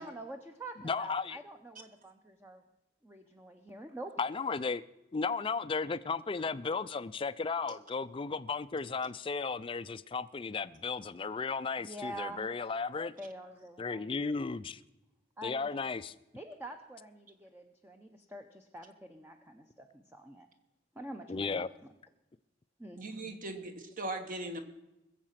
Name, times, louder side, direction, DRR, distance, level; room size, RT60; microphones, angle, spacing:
voice 1, 0.0-2.6 3.0-4.1 11.8-12.4 13.2-14.1 15.4-15.9 16.3-20.5 21.0-21.7 22.8-23.0, right 1 dB, 10° right, 0.7 m, -46 dB
voice 2, 0.8-1.4 4.2-4.8 5.1-13.1 13.8-14.8 15.4-16.1 21.3-21.7, left 4 dB, 30° left, 0.4 m, -34 dB
voice 3, 23.0-24.6, right 2 dB, 45° right, 1.5 m, -39 dB
21.0 x 7.5 x 5.8 m
head